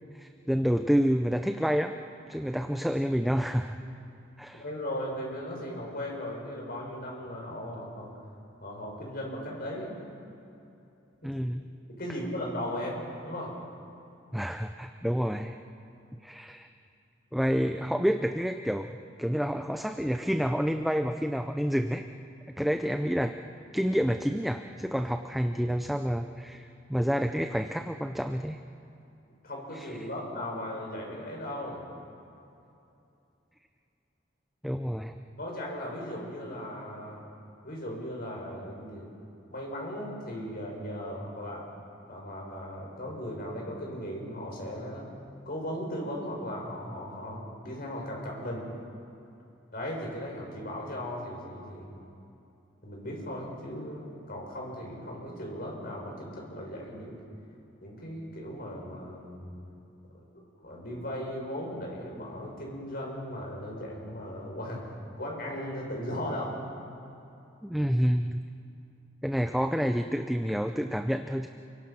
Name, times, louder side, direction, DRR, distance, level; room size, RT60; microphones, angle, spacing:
voice 1, 0.0-1.9 2.3-3.8 4.4-4.6 11.2-11.7 14.3-15.6 16.2-16.7 17.3-18.9 19.2-22.0 22.5-23.3 23.7-28.6 29.7-29.9 34.6-35.1 67.6-68.4 69.2-71.5, equal, ahead, 6 dB, 0.6 m, -28 dB
voice 2, 4.5-8.1 8.6-10.0 11.2-11.4 11.9-13.5 29.4-31.8 35.4-37.2 37.6-39.1 39.5-41.6 42.1-45.1 45.4-48.6 49.7-52.0 52.8-57.2 57.8-59.6 60.1-64.8 65.2-66.6, equal, 50° left, -2 dB, 6.9 m, -37 dB
30.0 x 23.5 x 6.0 m, 2.7 s
head